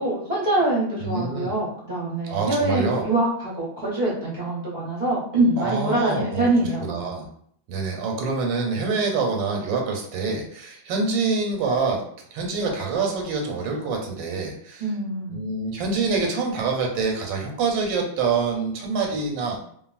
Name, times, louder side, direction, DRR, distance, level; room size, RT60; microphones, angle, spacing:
voice 1, 0.0-6.8 14.8-15.4, right 2 dB, 45° right, -7 dB, 0.5 m, -24 dB
voice 2, 1.0-1.5 2.2-3.0 5.6-6.5 6.8-7.2 7.7-12.0 12.3-14.8 15.3-19.6, right 4 dB, 90° right, 1 dB, 1.4 m, -26 dB
2.9 x 2.4 x 2.3 m, 0.65 s
omnidirectional pair, 2.1 m